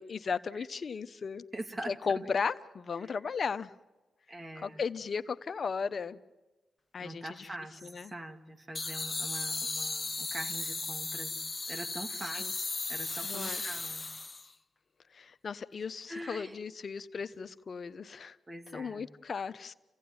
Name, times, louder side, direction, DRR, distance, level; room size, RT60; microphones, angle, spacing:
voice 1, 0.0-1.4 1.9-3.7 4.6-6.2 6.9-7.5 7.8-8.1 12.3-12.5 13.2-13.6 15.1-18.4 18.7-19.7, left 5 dB, 60° left, 12 dB, 0.9 m, -36 dB
voice 2, 1.5-2.2 3.0-3.1 4.3-4.8 7.0-11.4 11.7-14.1 16.1-16.6 18.5-19.1, right 1 dB, 35° right, 5 dB, 2.4 m, -43 dB
sound 1, 8.7-14.5, left 3 dB, 30° left, 1.1 m, -36 dB
sound 2, 10.5-12.9, right 4 dB, 75° right, 6.2 m, -55 dB
29.0 x 16.5 x 9.6 m, 1.2 s
cardioid pair, 55°, 0 cm